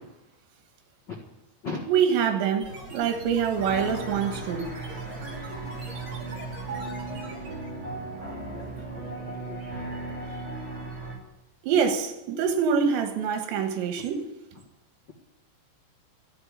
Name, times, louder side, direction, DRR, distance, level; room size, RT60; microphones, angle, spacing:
voice 1, 1.9-4.7 11.6-14.3, right 7 dB, 75° right, 3.7 m, -25 dB
sound 1, 2.6-7.8, right 1 dB, 40° right, 4.2 m, -43 dB
sound 2, 3.5-11.2, right 2 dB, 15° right, 5.6 m, -36 dB
voice 2, 8.1-9.7, left 4 dB, 80° left, 1.0 m, -39 dB
14.5 x 7.9 x 9.9 m
omnidirectional pair, 5.3 m